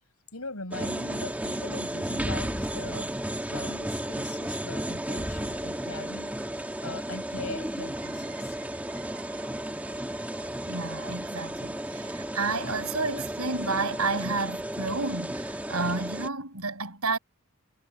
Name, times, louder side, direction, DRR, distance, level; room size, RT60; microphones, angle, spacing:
voice 1, 0.3-3.1 3.5-8.6, left 2 dB, 80° left, 7.6 m, -41 dB
sound 1, 0.7-16.3, right 1 dB, 5° right, 1.5 m, -33 dB
sound 2, 8.0-13.5 13.9-14.0, right 7 dB, 55° right, 4.5 m, -54 dB
voice 2, 10.6-17.2, right 3 dB, 85° right, 8.0 m, -31 dB
head